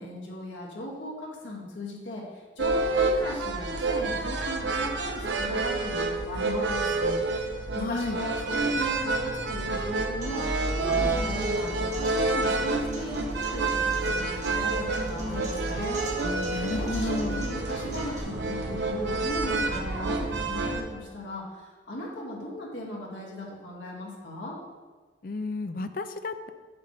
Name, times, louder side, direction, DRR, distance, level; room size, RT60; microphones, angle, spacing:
voice 1, 0.0-7.2 7.7-16.0 16.7-24.6, left 1 dB, 85° left, -3 dB, 1.9 m, -37 dB
sound 1, 2.6-20.8, right 3 dB, 75° right, 0.7 m, -28 dB
voice 2, 7.8-8.2 16.2-17.5 25.2-26.5, left 2 dB, 50° left, 9 dB, 0.4 m, -32 dB
Acoustic guitar, 10.2-18.2, right 1 dB, 40° right, 1.5 m, -39 dB
7.5 x 7.4 x 3.2 m, 1.4 s
head